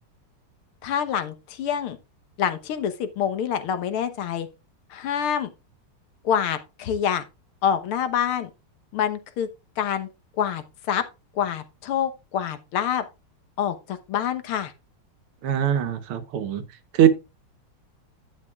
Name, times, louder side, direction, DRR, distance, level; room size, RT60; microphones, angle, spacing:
voice 1, 0.8-2.0 2.4-4.5 4.9-5.5 6.2-7.2 7.6-8.5 8.9-9.5 9.8-10.1 10.4-11.0 11.4-13.0 13.6-14.7, left 8 dB, 80° left, 1.9 m, -26 dB
voice 2, 15.4-16.6 16.9-17.1, right 9 dB, 90° right, 2.0 m, -21 dB
11.0 x 8.6 x 2.3 m
omnidirectional pair, 2.3 m